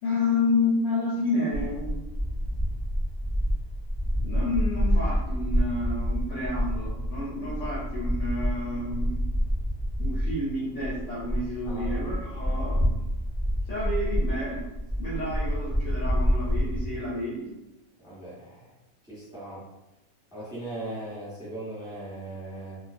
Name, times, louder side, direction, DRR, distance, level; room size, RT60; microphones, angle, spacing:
voice 1, 0.0-2.0 4.2-9.2 10.0-12.9 13.7-14.6 15.0-17.5, left 2 dB, 60° left, -7 dB, 0.9 m, -30 dB
sound 1, 1.5-10.4 10.8-17.0, equal, 20° left, 0.6 m, -28 dB
voice 2, 11.6-12.0 12.3-12.5 18.0-18.7 19.1-19.6 20.3-22.8, right 1 dB, 5° right, -9 dB, 1.0 m, -39 dB
2.4 x 2.3 x 2.5 m, 1.0 s
omnidirectional pair, 1.6 m